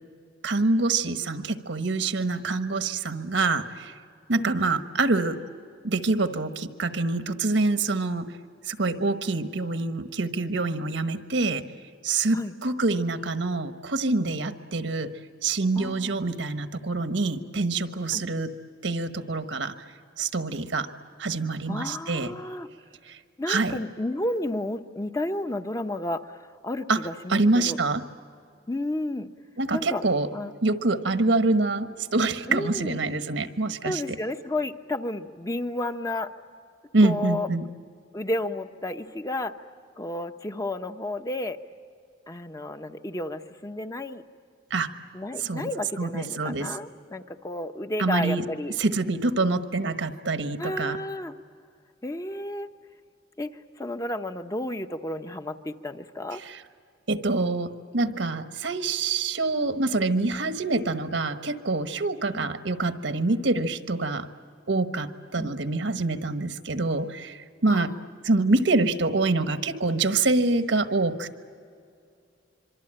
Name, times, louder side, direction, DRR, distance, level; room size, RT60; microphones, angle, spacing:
voice 1, 0.4-3.9 4.3-5.4 5.8-8.3 8.7-11.6 12.0-15.1 15.4-18.5 18.8-19.7 20.2-20.9 21.2-22.3 23.1-23.2 23.5-23.8 26.9-27.0 27.3-28.0 29.6-30.3 30.6-34.2 36.9-37.7 44.7-44.9 45.4-45.7 46.0-46.7 48.0-48.4 48.8-51.0 56.4-56.6 57.1-64.3 64.7-67.9 68.2-71.3, right 3 dB, 75° right, 9 dB, 1.3 m, -26 dB
voice 2, 15.8-16.2 18.1-18.2 21.7-22.7 23.4-26.2 26.6-27.8 28.7-29.3 29.7-30.0 30.3-30.5 32.5-33.0 33.8-36.3 37.0-37.5 38.1-39.5 40.0-41.6 42.3-44.2 45.1-48.7 50.6-51.3 52.0-52.7 53.4-56.4 62.3-62.5 65.4-65.5 67.7-68.1, left 1 dB, 20° left, 8 dB, 0.8 m, -32 dB
26.0 x 24.5 x 8.9 m, 2.4 s
head